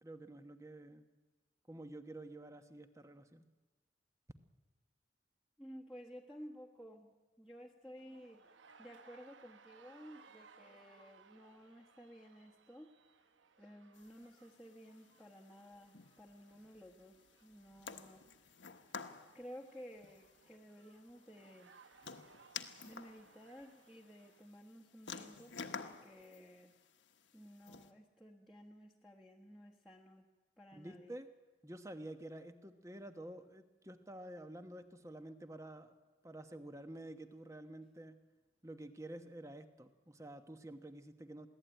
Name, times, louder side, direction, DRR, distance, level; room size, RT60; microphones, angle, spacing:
voice 1, 0.0-1.1 1.7-3.5 30.7-31.3 31.6-35.9 36.2-38.2 38.6-41.5, right 1 dB, 15° right, 9 dB, 1.0 m, -50 dB
voice 2, 5.6-7.1 7.4-8.5 8.8-12.9 13.6-18.2 19.3-21.7 22.8-26.7 27.3-30.2 30.6-31.2, equal, ahead, -4 dB, 1.4 m, -55 dB
sound 1, 8.0-24.6, right 5 dB, 80° right, 0.9 m, -65 dB
sound 2, 13.9-27.9, left 5 dB, 80° left, 1.3 m, -52 dB
23.0 x 16.5 x 9.2 m, 1.3 s
head